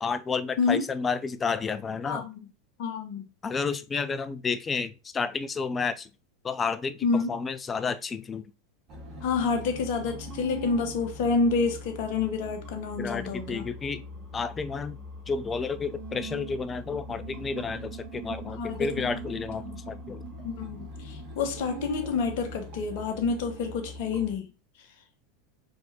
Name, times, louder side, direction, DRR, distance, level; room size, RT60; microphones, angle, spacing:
voice 1, 0.0-2.3 3.4-6.1 6.4-8.4 13.0-14.0 14.3-15.0 15.3-20.2, left 5 dB, 25° left, 0.4 m, -31 dB
voice 2, 2.0-2.5 2.8-3.3 7.0-7.3 9.2-13.7 18.6-19.8 20.4-24.5, left 4 dB, 55° left, 1.0 m, -28 dB
sound 1, 8.9-24.4, right 1 dB, 40° right, 1.8 m, -41 dB
4.5 x 3.5 x 2.7 m
figure-of-eight pair, 85°, 0 cm